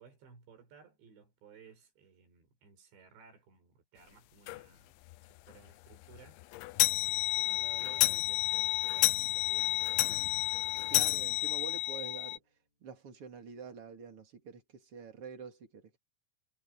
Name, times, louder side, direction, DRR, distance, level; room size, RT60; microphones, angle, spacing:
voice 1, 0.0-5.0 5.4-6.4 6.7-10.4, right 6 dB, 75° right, 7.4 m, -58 dB
sound 1, 4.5-4.6 5.1-5.2 5.5-5.6 5.9-12.4, left 18 dB, 85° left, 3.0 m, -30 dB
Bowed string instrument, 7.8-12.4, left 2 dB, 50° left, 8.9 m, -57 dB
voice 2, 10.8-12.4 12.8-16.0, right 6 dB, 40° right, 2.7 m, -47 dB
omnidirectional pair, 5.2 m